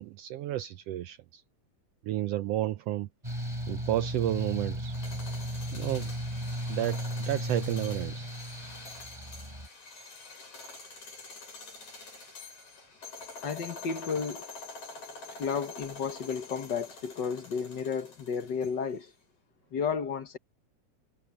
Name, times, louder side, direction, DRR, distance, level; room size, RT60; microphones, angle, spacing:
voice 1, 0.0-1.4 2.0-3.1 3.7-4.9 5.7-6.1 6.7-8.3, right 14 dB, 75° right, 1.5 m, -31 dB
Mechanical fan, 3.2-9.7, equal, 10° right, 6.8 m, -35 dB
sound 1, 4.8-19.0, left 3 dB, 80° left, 8.6 m, -46 dB
voice 2, 13.4-14.5 15.4-19.1 19.7-20.4, left 6 dB, 50° left, 1.5 m, -32 dB
omnidirectional pair, 3.3 m